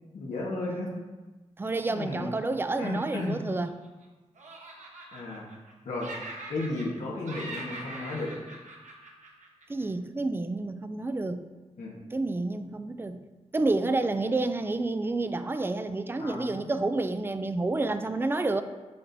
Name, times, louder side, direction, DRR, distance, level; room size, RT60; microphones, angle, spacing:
voice 1, 0.1-0.9 1.9-2.3 2.8-3.4 5.1-5.4 5.8-6.1 6.5-8.3 11.8-12.0 16.2-16.7, left 2 dB, 90° left, -4 dB, 1.3 m, -34 dB
voice 2, 1.6-3.7 9.7-11.4 12.1-13.2 13.5-18.6, right 2 dB, 20° right, 10 dB, 0.4 m, -29 dB
Laughter, 2.8-4.0 4.4-5.7 6.0-7.0 7.2-9.8, right 2 dB, 90° right, 1.0 m, -43 dB
7.6 x 5.7 x 2.6 m, 1.2 s
wide cardioid pair, 95°, 12 cm